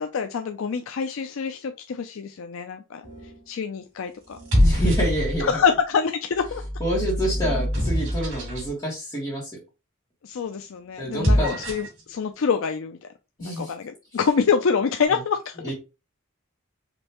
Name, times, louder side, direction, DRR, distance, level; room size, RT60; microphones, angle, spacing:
voice 1, 0.0-3.0 3.5-4.4 5.4-6.6 10.2-13.1 13.4-15.7, left 6 dB, 80° left, 6 dB, 0.4 m, -26 dB
sound 1, 3.0-3.5 4.3-5.6 6.4-8.7 11.0-12.0, equal, 90° right, 2.7 m, -24 dB
voice 2, 4.6-5.5 6.8-9.5 11.0-11.6 13.4-13.7 15.6-15.7, right 1 dB, 20° left, -7 dB, 1.8 m, -27 dB
5.2 x 3.1 x 3.0 m, 0.28 s
head